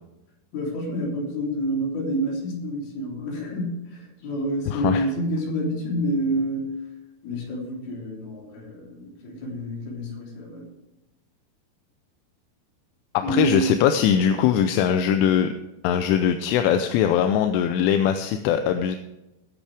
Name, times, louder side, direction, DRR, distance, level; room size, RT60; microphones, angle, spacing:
voice 1, 0.5-6.7 7.2-10.7 13.2-13.7 14.2-14.4, right 1 dB, 50° left, -2 dB, 5.1 m, -28 dB
voice 2, 4.7-5.0 13.3-15.5 15.8-19.0, left 9 dB, 80° left, 7 dB, 3.1 m, -21 dB
20.5 x 8.4 x 3.5 m, 0.96 s
omnidirectional pair, 5.8 m